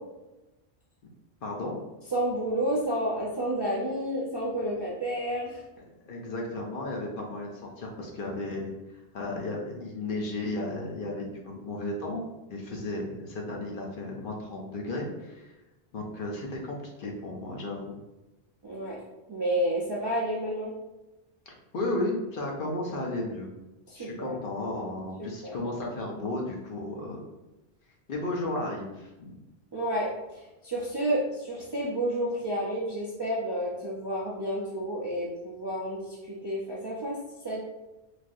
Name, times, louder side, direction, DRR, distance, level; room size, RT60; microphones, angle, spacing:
voice 1, 1.4-1.8 6.0-8.7 9.1-12.2 12.5-15.6 15.9-18.0 21.5-23.5 24.0-27.2 28.1-29.4, left 2 dB, 60° left, -1 dB, 0.7 m, -34 dB
voice 2, 2.1-5.6 18.6-19.0 19.3-20.7 23.9-24.4 25.2-25.6 29.7-37.2 37.4-37.6, right 1 dB, 40° right, -7 dB, 0.4 m, -30 dB
3.2 x 2.6 x 2.4 m, 1.0 s
omnidirectional pair, 1.1 m